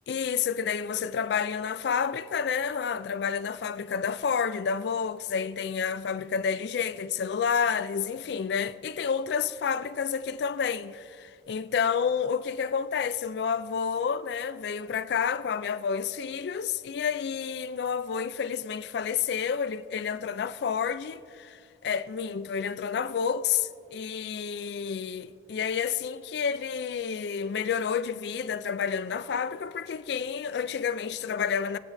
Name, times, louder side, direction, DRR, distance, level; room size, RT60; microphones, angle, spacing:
voice 1, 0.1-31.8, left 6 dB, 60° left, 0.3 m, -30 dB
22.0 x 8.3 x 2.6 m
head